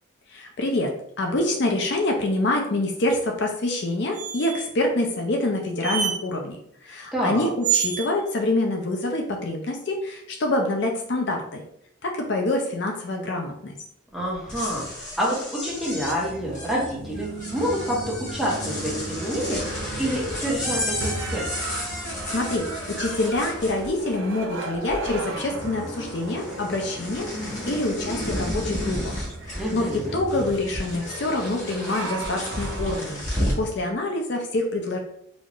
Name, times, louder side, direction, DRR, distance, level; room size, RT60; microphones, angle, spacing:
voice 1, 0.3-0.9 1.2-6.6 6.8-11.6 12.0-13.7 22.0-22.6 23.0-29.2 29.4-35.0, left 2 dB, 60° left, 2 dB, 0.5 m, -26 dB
sound 1, 4.1-4.7 5.8-6.2 7.6-8.1, right 9 dB, 40° right, 0.4 m, -26 dB
voice 2, 7.1-7.5 14.1-17.3 17.5-18.0 18.3-21.6 29.6-30.2, equal, ahead, -6 dB, 1.0 m, -28 dB
sound 2, 14.3-24.3 24.6-25.4 25.6-33.7, left 1 dB, 40° left, 1.1 m, -33 dB
sound 3, 15.7-33.0, right 2 dB, 75° right, 0.7 m, -37 dB
4.1 x 2.5 x 3.0 m, 0.71 s
head